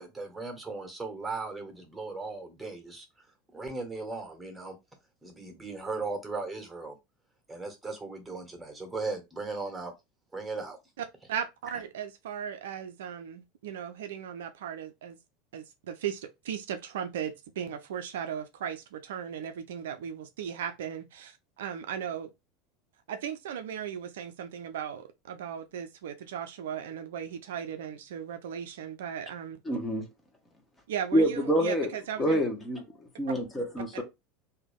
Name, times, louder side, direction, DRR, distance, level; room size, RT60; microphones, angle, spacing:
voice 1, 0.0-3.3 3.5-4.8 5.2-7.0 7.5-9.9 10.3-10.8, right 3 dB, 10° right, 1.6 m, -37 dB
voice 2, 11.0-15.2 15.5-22.3 23.1-29.6 30.9-32.4 33.9-34.0, right 8 dB, 65° right, 0.5 m, -37 dB
voice 3, 29.7-30.0 31.1-31.9 32.2-32.8 33.2-34.0, equal, 15° left, 1.4 m, -26 dB
3.5 x 2.8 x 3.6 m
figure-of-eight pair, 75°, 0 cm